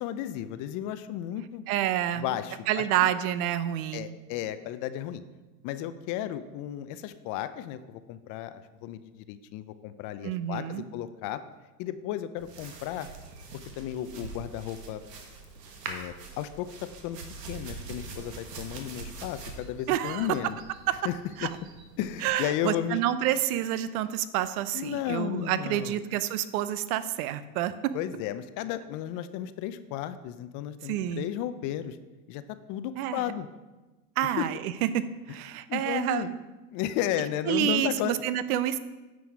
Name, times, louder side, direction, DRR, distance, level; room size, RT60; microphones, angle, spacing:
voice 1, 0.0-1.7 2.2-2.9 3.9-5.2 5.6-11.4 11.8-13.1 13.8-15.0 15.9-17.2 17.5-20.6 21.0-21.1 21.4-21.5 22.0-23.0 24.7-26.0 27.9-32.0 32.3-32.4 32.7-33.5 34.4-34.5 35.7-36.3 36.7-38.1, left 11 dB, 40° left, 12 dB, 0.6 m, -33 dB
voice 2, 1.7-2.3 2.7-4.1 10.2-10.8 19.9-20.3 20.9-21.0 21.4-21.5 22.2-27.9 30.8-31.3 33.0-33.2 34.2-36.4 37.5-38.8, right 12 dB, 65° right, 14 dB, 0.7 m, -28 dB
sound 1, 12.4-22.4, right 3 dB, 90° right, 1.6 m, -44 dB
9.4 x 6.2 x 4.8 m, 1.2 s
supercardioid pair, 120°, 47 cm